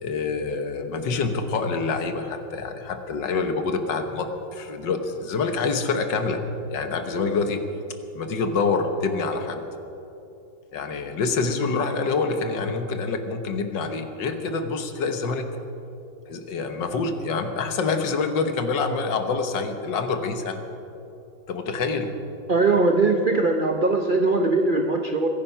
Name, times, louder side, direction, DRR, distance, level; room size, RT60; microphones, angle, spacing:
voice 1, 0.0-6.4 6.7-7.6 8.2-9.6 10.7-15.5 16.3-20.6 21.5-22.1, left 4 dB, 70° left, 7 dB, 1.8 m, -26 dB
voice 2, 22.5-25.3, right 3 dB, 60° right, 4 dB, 0.5 m, -21 dB
23.0 x 10.5 x 5.5 m, 2.9 s
omnidirectional pair, 2.1 m